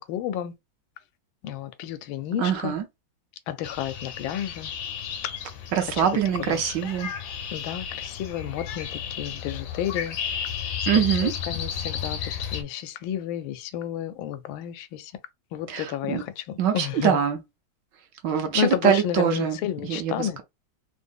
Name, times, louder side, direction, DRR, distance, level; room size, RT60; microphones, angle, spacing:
voice 1, 0.1-0.5 1.4-2.7 3.5-4.7 6.5-6.6 7.5-10.2 10.9-12.2 12.5-15.1 15.5-17.2 18.5-20.4, left 11 dB, 85° left, 1.4 m, -31 dB
voice 2, 2.3-2.8 5.7-7.1 10.9-11.3 15.7-16.2 16.6-17.4 18.2-20.4, right 8 dB, 70° right, 1.2 m, -24 dB
sound 1, 3.6-12.6, left 8 dB, 70° left, 1.1 m, -33 dB
3.6 x 2.1 x 3.5 m
omnidirectional pair, 2.2 m